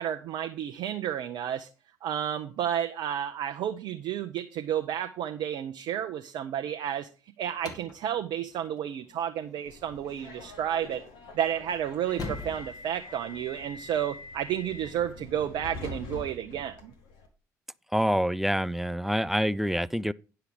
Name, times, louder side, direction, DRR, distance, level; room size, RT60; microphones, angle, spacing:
voice 1, 0.0-1.7 2.0-7.1 7.4-11.0 11.3-16.9, right 10 dB, 55° right, 0.6 m, -31 dB
sound 1, 7.5-13.9, left 4 dB, 45° left, 2.0 m, -45 dB
Subway metro underground, 9.7-17.3, left 2 dB, 60° left, 1.9 m, -44 dB
voice 2, 17.9-20.1, equal, 5° right, 0.4 m, -26 dB
9.7 x 5.8 x 5.0 m
figure-of-eight pair, 55°, 9 cm